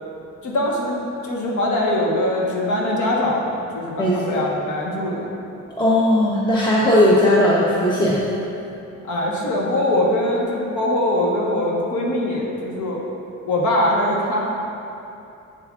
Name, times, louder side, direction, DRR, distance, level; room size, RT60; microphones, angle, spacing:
voice 1, 0.4-0.9 1.2-5.3 9.0-13.1 13.5-14.4, left 1 dB, 75° left, -3 dB, 1.4 m, -22 dB
voice 2, 4.0-4.4 5.8-8.3, left 1 dB, 15° left, -6 dB, 0.9 m, -17 dB
7.5 x 7.2 x 2.5 m, 2.8 s
cardioid pair, 90°, 30 cm